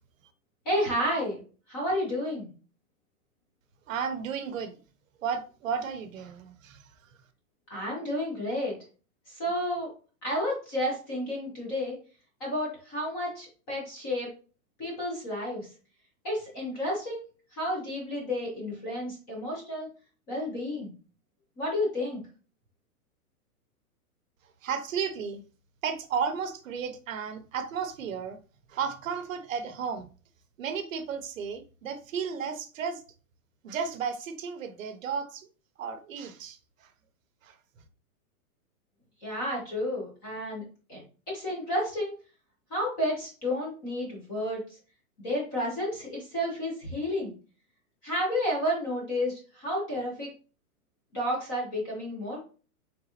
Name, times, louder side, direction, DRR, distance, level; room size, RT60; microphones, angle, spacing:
voice 1, 0.6-1.4 1.7-2.5 7.7-8.7 9.3-9.9 10.2-12.0 12.4-14.3 14.8-15.7 16.2-17.2 17.5-19.9 20.3-20.9 21.6-22.2 39.2-40.6 40.9-42.1 42.7-44.6 45.2-47.3 48.0-50.3 51.1-52.4, left 1 dB, 15° left, 0.8 m, -31 dB
voice 2, 3.9-4.8 5.2-6.8 24.6-25.4 25.8-28.4 28.7-30.1 30.6-33.0 33.6-35.5 35.8-36.9 37.4-37.6, right 6 dB, 60° right, 0.7 m, -33 dB
3.8 x 3.6 x 2.9 m
hypercardioid pair, 180°, 44 cm